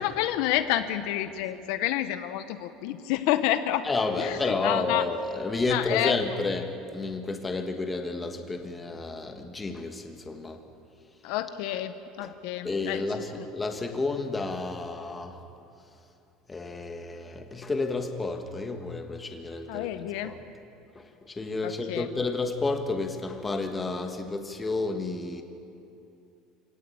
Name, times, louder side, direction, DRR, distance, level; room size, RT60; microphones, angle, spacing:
voice 1, 0.0-3.8 4.2-5.0 5.7-6.2 11.2-13.0 13.4-13.5 19.7-20.3 21.6-22.1, left 13 dB, 60° left, 10 dB, 1.0 m, -29 dB
voice 2, 3.8-10.6 12.2-12.3 12.6-15.4 16.5-19.9 20.2-20.4 20.9-25.4, left 3 dB, 10° left, 5 dB, 1.4 m, -31 dB
26.5 x 17.5 x 8.7 m, 2.7 s
cardioid pair, 175°, 0 cm